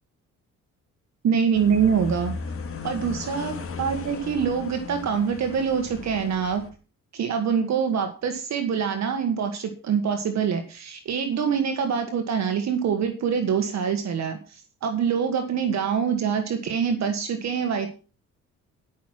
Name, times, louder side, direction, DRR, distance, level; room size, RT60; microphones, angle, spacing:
voice 1, 1.2-2.3 2.8-6.6 7.1-17.9, right 7 dB, 60° right, 6 dB, 1.7 m, -25 dB
sound 1, 1.5-6.7, left 5 dB, 45° left, 2.5 m, -36 dB
14.0 x 6.2 x 6.1 m, 0.36 s
cardioid pair, 90°, 30 cm